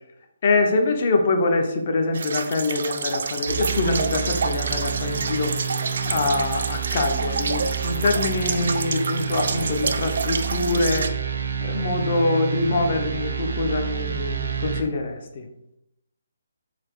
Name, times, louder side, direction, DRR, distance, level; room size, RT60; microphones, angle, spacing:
voice 1, 0.4-5.5 6.0-11.1 11.6-15.5, left 3 dB, 40° left, 5 dB, 0.6 m, -24 dB
sound 1, 2.1-11.1, right 5 dB, 55° right, 0.3 m, -29 dB
sound 2, 3.5-14.8, right 7 dB, 75° right, 0.7 m, -29 dB
4.1 x 2.8 x 4.5 m, 0.86 s
hypercardioid pair, 170°, 0 cm